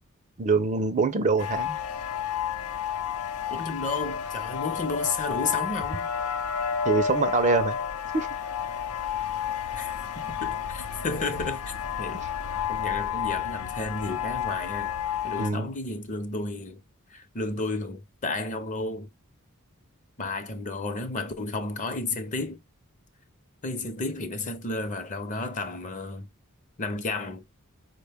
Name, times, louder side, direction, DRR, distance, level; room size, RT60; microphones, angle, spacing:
voice 1, 0.4-1.8 6.9-7.8 8.1-8.3 15.4-15.7, right 4 dB, 35° right, 0.5 m, -24 dB
sound 1, 1.4-15.5, left 8 dB, 85° left, 0.6 m, -31 dB
voice 2, 3.5-6.1 9.8-11.7 12.0-12.2 12.7-14.9 15.2-16.8 17.1-19.1 20.2-22.6 23.6-26.3 26.8-27.4, left 3 dB, 35° left, 0.7 m, -32 dB
4.8 x 2.2 x 3.4 m
head